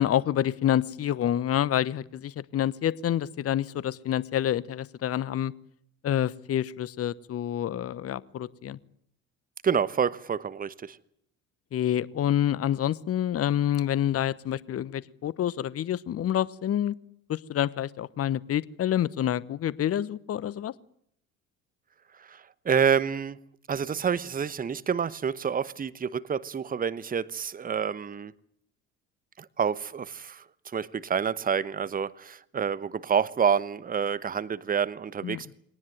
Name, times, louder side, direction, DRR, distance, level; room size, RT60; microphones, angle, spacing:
voice 1, 0.0-5.5 6.0-8.8 11.7-16.9 17.3-20.7 35.2-35.4, left 11 dB, 35° left, 1.0 m, -27 dB
voice 2, 9.6-11.0 22.3-23.4 23.7-28.3 29.4-30.4 30.7-35.5, right 7 dB, 20° right, 1.0 m, -28 dB
23.0 x 18.5 x 9.2 m
figure-of-eight pair, 60°, 41 cm